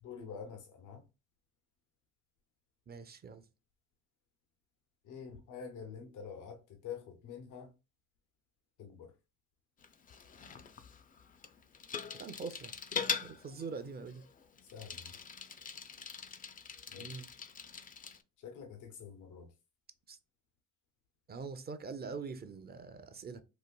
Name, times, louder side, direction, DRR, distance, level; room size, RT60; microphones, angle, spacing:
voice 1, 0.0-1.0 5.0-7.7 8.8-9.1 14.6-15.1 16.9-17.2 18.4-19.5, left 7 dB, 80° left, 0.7 m, -47 dB
voice 2, 2.9-3.4 12.1-12.7 13.1-14.2 17.0-17.3 20.1-20.2 21.3-23.4, right 5 dB, 30° right, 0.5 m, -43 dB
Bicycle, 9.8-18.2, left 6 dB, 30° left, 0.4 m, -42 dB
4.1 x 2.5 x 2.2 m
cardioid pair, 90°, 30 cm